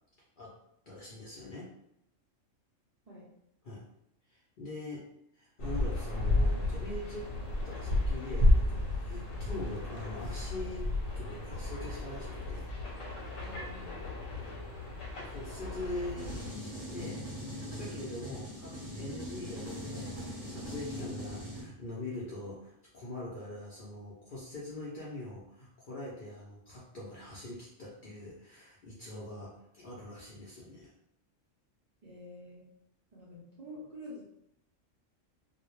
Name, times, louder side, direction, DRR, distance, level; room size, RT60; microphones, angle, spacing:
voice 1, 0.9-1.7 3.6-3.9 4.3-5.1 5.3-7.3 7.6-10.9 11.1-12.7 14.4-14.5 15.0-30.9, left 1 dB, 65° left, -6 dB, 0.5 m, -43 dB
sound 1, 5.6-16.5, left 1 dB, 85° left, 1.0 m, -32 dB
voice 2, 13.4-13.9 32.0-32.6 33.1-34.2, left 1 dB, 60° right, -8 dB, 0.4 m, -47 dB
sound 2, 16.2-21.6, equal, 15° right, 0.6 m, -41 dB
2.1 x 2.0 x 2.9 m, 0.79 s
omnidirectional pair, 1.3 m